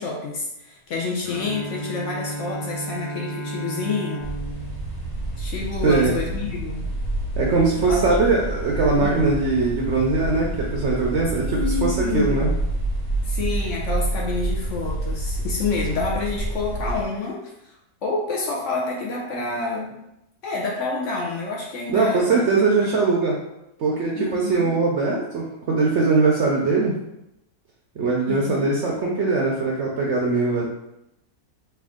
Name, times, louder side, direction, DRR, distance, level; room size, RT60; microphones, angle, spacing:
voice 1, 0.0-4.3 5.4-6.9 7.8-8.0 9.0-9.3 11.4-12.6 13.2-17.7 18.0-20.0 20.4-22.4 22.8-22.9 24.2-24.7 28.3-28.7, left 3 dB, 65° left, -2 dB, 0.8 m, -28 dB
Bowed string instrument, 1.2-6.1, right 2 dB, 15° right, 0.6 m, -34 dB
sound 1, 4.2-17.0, right 1 dB, 90° left, 1.8 m, -28 dB
voice 2, 5.8-6.2 7.4-12.5 21.9-23.4 23.8-27.0 28.0-30.6, right 3 dB, 65° right, -2 dB, 0.7 m, -21 dB
3.4 x 2.6 x 3.5 m, 0.86 s
omnidirectional pair, 1.7 m